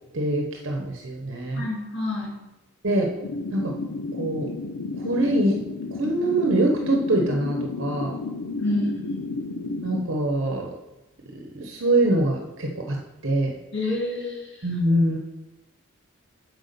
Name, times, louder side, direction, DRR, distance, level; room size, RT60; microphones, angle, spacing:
voice 1, 0.1-1.6 2.8-3.1 3.5-3.7 4.1-4.5 5.0-5.6 5.9-8.2 9.8-10.7 11.5-13.5 14.6-15.2, right 1 dB, 60° right, 1 dB, 1.0 m, -24 dB
voice 2, 1.5-2.3 8.6-9.3 13.7-14.4, left 2 dB, 50° left, -3 dB, 2.8 m, -28 dB
sound 1, 3.2-10.0, left 3 dB, 85° left, 0.6 m, -32 dB
8.1 x 4.8 x 6.8 m, 0.99 s
head